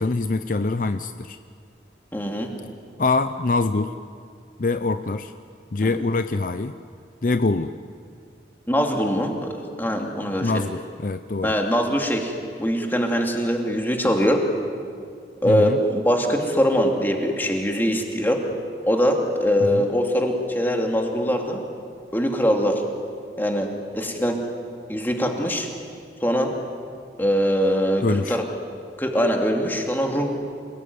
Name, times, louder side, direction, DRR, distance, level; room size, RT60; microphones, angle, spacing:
voice 1, 0.0-1.4 3.0-3.9 4.6-5.3 5.7-6.7 7.2-7.7 10.4-11.5 15.5-15.8 19.7-19.8 28.0-28.4, left 3 dB, 50° left, 10 dB, 0.6 m, -24 dB
voice 2, 2.1-2.5 5.8-5.9 8.7-10.5 11.4-14.4 15.4-18.4 18.8-21.6 22.1-22.8 23.4-23.7 23.9-24.4 24.9-25.7 26.2-26.5 27.2-28.4 29.0-30.4, equal, 10° left, 2 dB, 2.6 m, -22 dB
28.5 x 19.5 x 9.6 m, 2.3 s
head